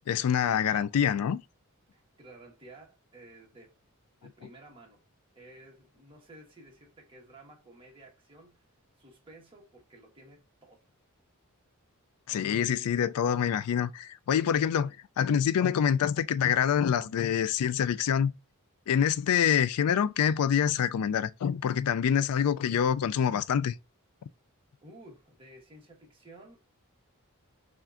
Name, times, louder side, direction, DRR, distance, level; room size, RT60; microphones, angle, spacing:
voice 1, 0.1-1.4 12.3-18.3 18.9-23.7, left 8 dB, 80° left, 0.3 m, -26 dB
voice 2, 1.9-3.7 4.2-5.0 5.3-8.6 9.0-10.8 14.8-14.9 24.8-26.6, right 1 dB, 25° right, 1.3 m, -53 dB
5.7 x 2.5 x 2.5 m
head